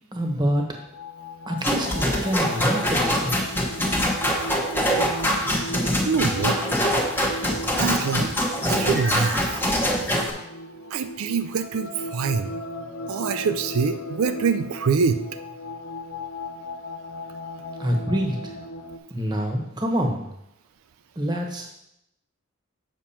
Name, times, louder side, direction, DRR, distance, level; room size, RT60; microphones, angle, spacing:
voice 1, 0.1-0.6 1.5-3.3 17.8-18.5 19.1-20.2 21.2-21.7, equal, 20° right, 2 dB, 1.1 m, -26 dB
sound 1, 0.7-19.0, left 1 dB, 75° left, 0.7 m, -37 dB
sound 2, 1.6-10.3, equal, 10° left, 1.0 m, -24 dB
voice 2, 6.1-6.6 7.8-8.3 8.7-9.6 10.9-12.6 13.1-15.2, right 5 dB, 90° right, 10 dB, 0.4 m, -25 dB
7.2 x 6.1 x 4.3 m, 0.79 s
head